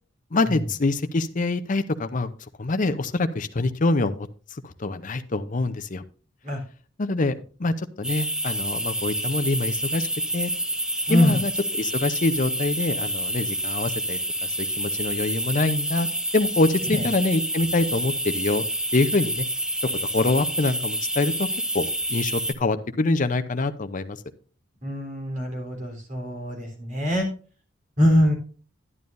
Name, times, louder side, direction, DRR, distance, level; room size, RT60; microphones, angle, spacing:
voice 1, 0.3-2.3 2.6-4.3 4.6-6.0 7.0-7.3 7.6-10.1 10.3-10.5 11.1-16.1 16.3-18.6 18.9-19.5 19.8-21.5 21.7-21.8 22.1-24.2, left 2 dB, 45° left, 10 dB, 0.7 m, -25 dB
sound 1, 8.0-22.5, right 1 dB, 5° right, 0.6 m, -28 dB
voice 2, 24.8-27.3 28.0-28.3, left 1 dB, 45° right, 1 dB, 3.5 m, -23 dB
11.0 x 10.5 x 2.6 m, 0.38 s
head